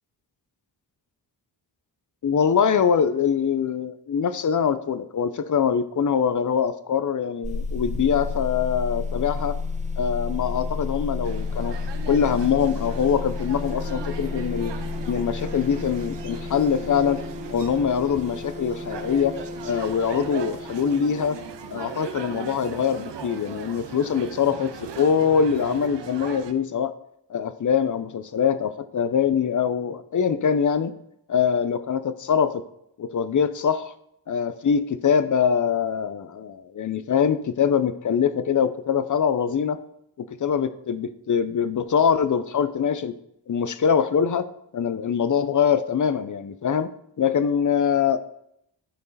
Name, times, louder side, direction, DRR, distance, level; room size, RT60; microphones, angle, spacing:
voice 1, 2.2-9.6 10.0-11.8 12.1-14.7 15.0-17.2 17.5-19.4 19.6-21.4 21.7-26.9 27.3-30.9 31.3-32.6 33.0-33.9 34.3-39.8 40.2-43.1 43.5-44.5 44.7-46.9 47.2-48.2, left 7 dB, 45° left, 12 dB, 0.6 m, -23 dB
sound 1, 7.4-22.0, left 4 dB, 15° right, 0.6 m, -32 dB
sound 2, 11.2-26.5, right 6 dB, 75° right, 0.7 m, -39 dB
12.5 x 4.6 x 4.1 m, 0.78 s
wide cardioid pair, 75°, 44 cm